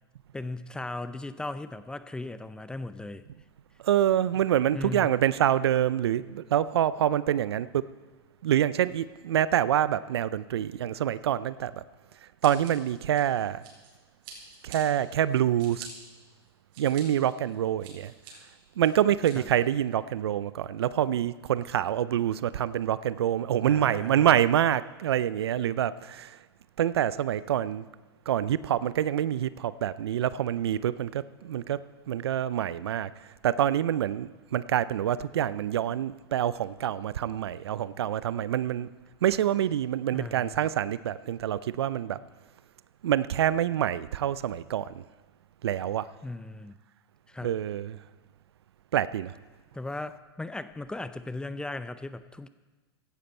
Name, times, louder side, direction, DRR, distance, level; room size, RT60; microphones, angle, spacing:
voice 1, 0.3-3.2 4.7-5.1 19.4-19.5 23.6-24.4 40.1-40.6 46.2-46.7 47.3-47.5 49.7-52.5, left 2 dB, 5° left, 0.6 m, -37 dB
voice 2, 3.8-7.8 8.4-11.8 12.4-13.6 14.6-15.9 16.8-18.1 18.8-26.4 26.8-27.8 28.3-31.8 32.1-33.1 33.4-38.9 39.2-42.2 43.0-45.0 45.6-46.1 47.4-48.0 48.9-49.3, right 11 dB, 75° right, 0.5 m, -26 dB
Scissors, 12.4-13.9 14.2-14.8 15.3-15.9 16.4-17.0 17.5-18.3 18.8-19.3, right 8 dB, 60° right, 5.0 m, -47 dB
16.5 x 11.5 x 4.4 m
hypercardioid pair, 105°, 13 cm